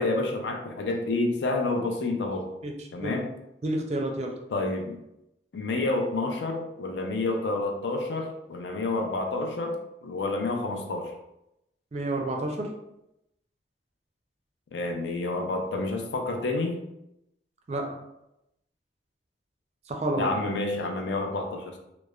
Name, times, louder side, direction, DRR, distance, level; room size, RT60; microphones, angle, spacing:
voice 1, 0.0-2.5 2.9-3.3 4.5-5.0 5.5-11.1 14.7-16.8 20.2-21.8, left 2 dB, 85° left, 3 dB, 0.4 m, -29 dB
voice 2, 3.6-4.3 11.9-12.7 17.7-17.8 19.9-20.3, right 1 dB, 40° right, 2 dB, 0.4 m, -29 dB
3.0 x 2.0 x 2.3 m, 0.86 s
head